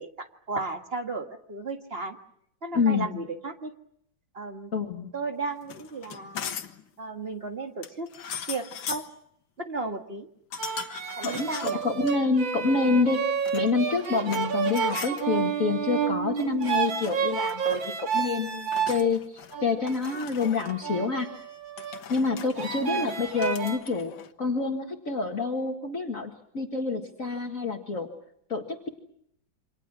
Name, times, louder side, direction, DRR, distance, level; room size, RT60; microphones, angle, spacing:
voice 1, 0.0-2.2 2.6-3.7 4.4-4.7 5.1-6.5 7.0-8.1 8.5-9.1 9.6-10.3 11.2-11.8 22.8-23.1, right 3 dB, 30° right, 5 dB, 1.8 m, -34 dB
voice 2, 2.7-3.2 4.7-5.1 11.2-19.2 19.6-21.3 22.1-28.1 28.5-28.9, left 4 dB, 45° left, 3 dB, 2.1 m, -27 dB
sound 1, 5.6-6.8 7.8-9.1 10.5-12.2 13.3-14.5 14.7-15.2 16.4-16.8 17.0-17.9 18.7-19.6 19.9-20.8 21.8-24.3, left 7 dB, 90° left, 2.1 m, -40 dB
sound 2, 10.6-19.0 19.5-22.0 22.6-23.8, right 6 dB, 80° right, 2.8 m, -30 dB
28.5 x 25.5 x 6.1 m, 0.72 s
omnidirectional pair, 2.1 m